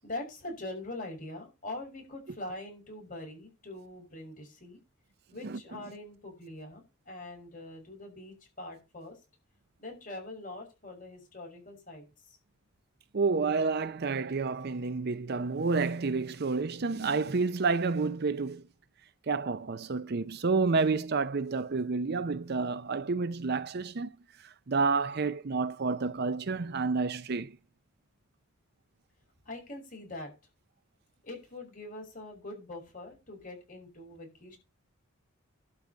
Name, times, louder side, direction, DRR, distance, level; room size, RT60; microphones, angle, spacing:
voice 1, 0.0-4.8 5.3-9.2 9.8-12.4 29.4-30.3 31.2-34.6, left 2 dB, 40° left, 6.0 m, -43 dB
voice 2, 13.1-18.6 19.3-24.1 24.4-27.6, right 4 dB, 50° right, 0.5 m, -29 dB
12.0 x 4.9 x 8.4 m
head